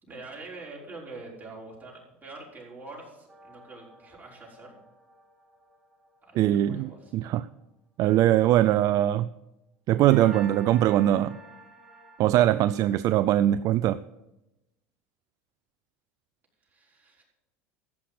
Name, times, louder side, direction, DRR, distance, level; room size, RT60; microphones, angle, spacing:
voice 1, 0.0-4.8 6.2-7.1 16.7-17.2, right 3 dB, 25° right, -4 dB, 5.5 m, -45 dB
sound 1, 3.3-6.8 10.1-12.9, right 2 dB, 10° right, 3.2 m, -49 dB
voice 2, 6.4-7.5 8.0-9.3 9.9-11.4 12.2-14.0, right 13 dB, 50° right, 16 dB, 0.4 m, -22 dB
14.5 x 5.9 x 7.8 m, 0.95 s
hypercardioid pair, 95°, 7 cm